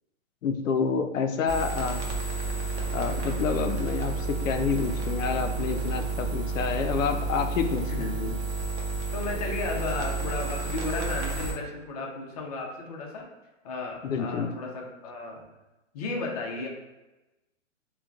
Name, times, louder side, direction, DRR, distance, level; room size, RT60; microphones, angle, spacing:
voice 1, 0.4-2.1 2.9-8.3 14.0-14.5, left 6 dB, 80° left, 6 dB, 0.5 m, -28 dB
sound 1, 1.5-11.5, right 3 dB, 60° right, 0.8 m, -31 dB
voice 2, 7.8-8.2 9.1-13.3 13.6-15.4 15.9-16.7, left 3 dB, 30° left, -1 dB, 0.5 m, -34 dB
3.7 x 2.3 x 2.3 m, 1.0 s
hypercardioid pair, 140°, 39 cm